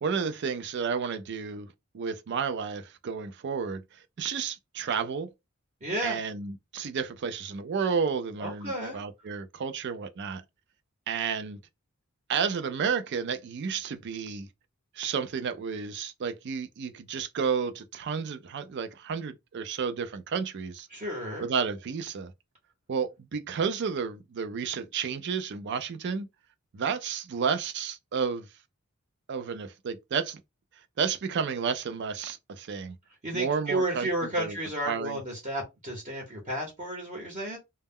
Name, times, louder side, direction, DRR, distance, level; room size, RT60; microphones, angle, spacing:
voice 1, 0.0-1.7 1.9-3.8 4.2-5.3 6.0-10.4 11.1-11.6 12.3-14.5 15.0-20.9 21.4-22.3 22.9-26.3 26.7-28.5 29.3-30.4 31.0-33.0 33.3-34.6 34.8-35.2, right 6 dB, 55° right, 0.4 m, -31 dB
voice 2, 5.8-6.2 8.4-9.0 20.9-21.5 33.2-37.6, right 1 dB, 35° right, 0.9 m, -32 dB
2.1 x 2.1 x 3.5 m
head